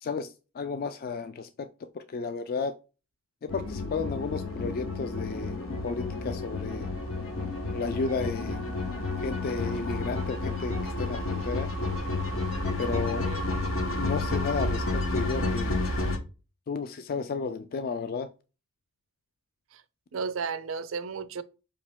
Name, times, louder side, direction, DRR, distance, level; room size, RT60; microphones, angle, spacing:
voice 1, 0.0-2.7 3.4-5.6 5.8-6.9 7.7-8.7 9.2-11.7 12.8-13.3 13.9-15.8 16.7-18.3, left 4 dB, 45° left, 0.3 m, -33 dB
sound 1, 3.5-16.2, left 2 dB, 80° left, 1.1 m, -31 dB
voice 2, 12.9-13.4 19.7-19.8 20.1-21.4, right 5 dB, 75° right, 0.5 m, -34 dB
5.2 x 2.9 x 3.4 m
head